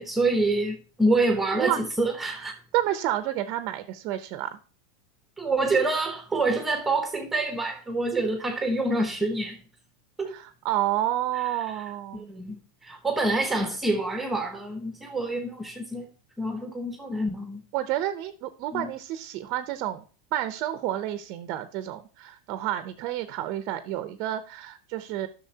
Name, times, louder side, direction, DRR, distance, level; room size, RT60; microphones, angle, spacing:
voice 1, 0.0-2.6 5.4-9.6 10.2-10.3 12.1-16.1 16.4-17.6 18.7-18.9, right 2 dB, 5° right, 0.9 m, -27 dB
voice 2, 1.5-1.9 2.3-2.5 2.7-4.6 10.3-12.3 17.7-20.0 20.3-25.3, right 13 dB, 45° right, 0.6 m, -30 dB
11.5 x 6.2 x 2.8 m
supercardioid pair, 150°, 2 cm